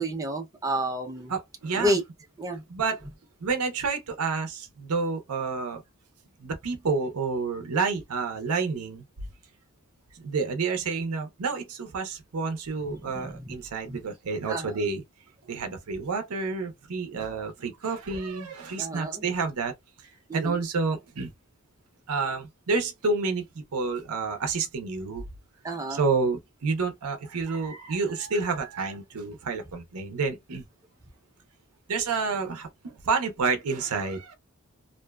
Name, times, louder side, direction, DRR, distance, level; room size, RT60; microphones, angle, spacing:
voice 1, 0.0-1.3 1.8-2.0 2.4-2.6 12.9-13.5 13.9-14.0 14.5-14.8 18.8-19.2 20.3-20.6 25.6-26.0, right 1 dB, 15° right, 0.5 m, -30 dB
voice 2, 1.3-2.0 2.5-3.0 3.4-5.8 6.4-9.0 10.1-15.0 15.5-19.7 20.3-21.3 22.1-25.2 25.9-30.6 31.9-34.3, right 4 dB, 85° right, 0.6 m, -29 dB
2.5 x 2.2 x 2.2 m
head